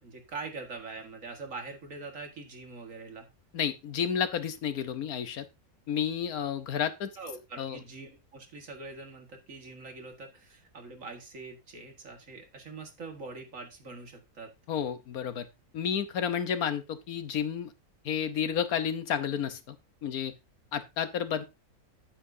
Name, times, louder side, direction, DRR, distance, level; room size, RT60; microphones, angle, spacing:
voice 1, 0.0-3.3 7.2-14.5, right 3 dB, 60° right, 4 dB, 2.1 m, -43 dB
voice 2, 3.5-5.4 5.9-7.1 7.6-7.8 14.7-15.5 15.7-17.7 18.0-19.8 20.0-20.3 20.7-21.4, left 8 dB, 85° left, 10 dB, 1.4 m, -31 dB
10.0 x 8.5 x 2.7 m, 0.24 s
omnidirectional pair, 1.5 m